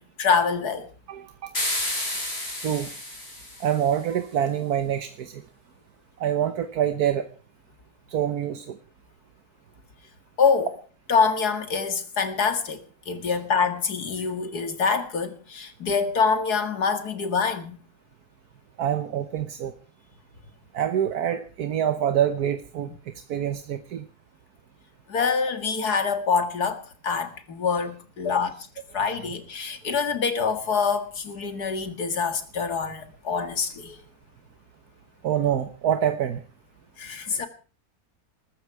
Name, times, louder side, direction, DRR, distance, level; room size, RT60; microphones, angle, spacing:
voice 1, 0.0-0.9 10.4-10.7 11.1-17.8 25.1-28.7 28.9-34.0 37.0-37.5, left 5 dB, 85° left, 2.4 m, -25 dB
voice 2, 1.1-1.5 2.6-2.9 3.6-5.4 6.2-7.3 8.1-8.8 13.2-13.3 18.8-19.7 20.7-22.9 23.3-24.0 35.2-36.4, right 9 dB, 80° right, 1.5 m, -26 dB
sound 1, 1.5-3.9, left 1 dB, 40° left, 5.8 m, -31 dB
20.5 x 13.5 x 4.8 m
omnidirectional pair, 1.6 m